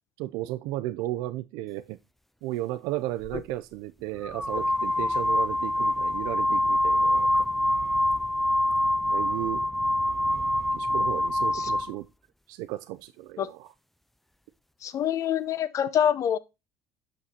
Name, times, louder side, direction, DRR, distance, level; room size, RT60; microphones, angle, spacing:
voice 1, 0.2-2.0 2.4-7.3 9.1-9.7 10.7-12.0 12.5-13.7, right 15 dB, 75° right, 0.4 m, -34 dB
sound 1, 3.2-3.4 4.2-11.9, left 1 dB, ahead, 0.4 m, -25 dB
voice 2, 14.8-16.4, left 9 dB, 50° left, 0.7 m, -26 dB
6.5 x 5.8 x 2.8 m
supercardioid pair, 85°, 7 cm